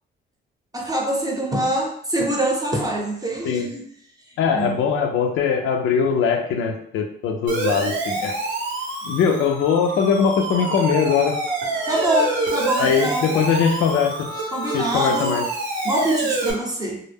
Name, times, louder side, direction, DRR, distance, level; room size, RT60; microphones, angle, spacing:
voice 1, 0.7-3.8 4.5-4.7 11.8-13.3 14.5-15.4 15.8-17.0, right 1 dB, 20° right, 0 dB, 0.7 m, -24 dB
voice 2, 4.4-8.4 9.0-11.4 12.8-14.3 14.7-15.4, left 6 dB, 85° left, 3 dB, 0.4 m, -21 dB
Siren, 7.5-16.5, right 3 dB, 75° right, 0.8 m, -27 dB
2.1 x 2.0 x 3.3 m, 0.66 s
cardioid pair, 90°, 20 cm